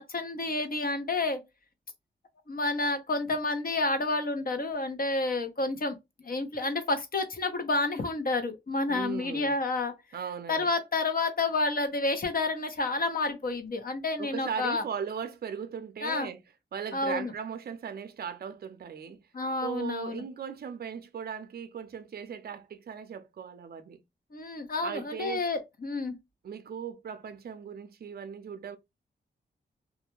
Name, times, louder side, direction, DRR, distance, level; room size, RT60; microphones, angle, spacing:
voice 1, 0.0-1.4 2.5-9.9 10.5-14.8 16.0-16.3 16.9-17.3 19.3-20.2 24.3-26.1, left 2 dB, 50° left, 0.8 m, -30 dB
voice 2, 8.9-9.5 10.1-10.7 14.2-16.4 16.7-19.2 19.6-24.0 24.8-25.4 26.4-28.8, right 7 dB, 55° right, 0.5 m, -38 dB
2.4 x 2.1 x 2.9 m
cardioid pair, 65°, 19 cm